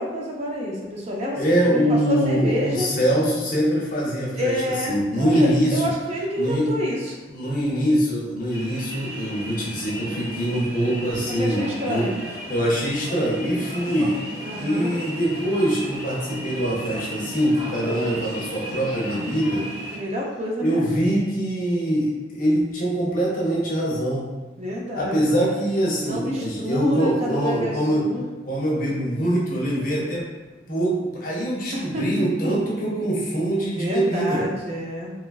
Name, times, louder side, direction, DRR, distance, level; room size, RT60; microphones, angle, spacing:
voice 1, 0.0-1.4 1.7-2.9 4.4-7.2 11.3-12.2 14.4-14.9 19.9-20.9 24.6-25.2 26.1-28.2 31.7-32.0 32.4-32.5 33.7-35.1, equal, 35° right, -2 dB, 0.3 m, -28 dB
voice 2, 1.3-4.5 4.9-5.8 6.4-6.7 7.3-12.1 12.5-14.2 14.6-19.7 20.6-24.3 24.9-28.1 28.4-30.2 30.7-34.4, right 1 dB, 45° left, -4 dB, 0.6 m, -23 dB
sound 1, 8.5-20.0, equal, 10° right, 0.9 m, -35 dB
2.9 x 2.3 x 2.3 m, 1.2 s
head